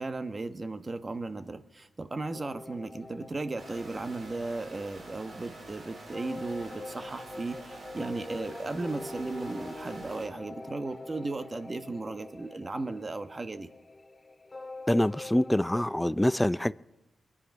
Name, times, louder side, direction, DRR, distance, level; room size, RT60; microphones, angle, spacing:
voice 1, 0.0-13.7, right 3 dB, 35° right, 1.1 m, -36 dB
sound 1, 2.3-15.8, left 2 dB, 30° left, 2.2 m, -45 dB
sound 2, 3.6-10.3, right 2 dB, 60° right, 4.0 m, -47 dB
voice 2, 14.9-16.7, left 1 dB, 10° left, 0.4 m, -25 dB
23.5 x 10.0 x 5.3 m
cardioid pair, 55°, 0 cm